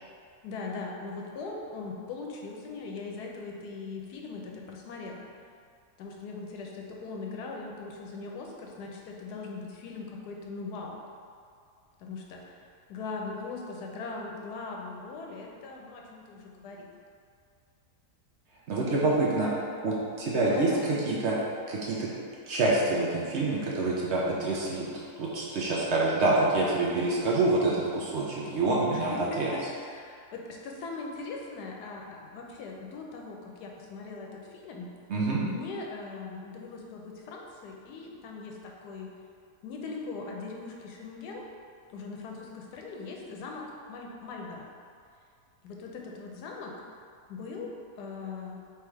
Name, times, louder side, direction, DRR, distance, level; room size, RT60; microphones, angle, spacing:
voice 1, 0.4-5.2 6.0-11.0 12.0-12.6 12.9-16.9 19.0-19.6 20.4-20.8 28.9-34.9 35.4-39.1 39.6-41.5 41.9-44.7 45.6-46.7 47.3-48.6, left 4 dB, 90° left, 0 dB, 1.2 m, -40 dB
voice 2, 18.7-19.5 19.8-21.4 21.7-22.1 22.5-24.9 25.2-29.5 35.1-35.4, right 2 dB, 60° right, -5 dB, 0.8 m, -26 dB
3.5 x 3.2 x 4.6 m, 2.3 s
omnidirectional pair, 1.7 m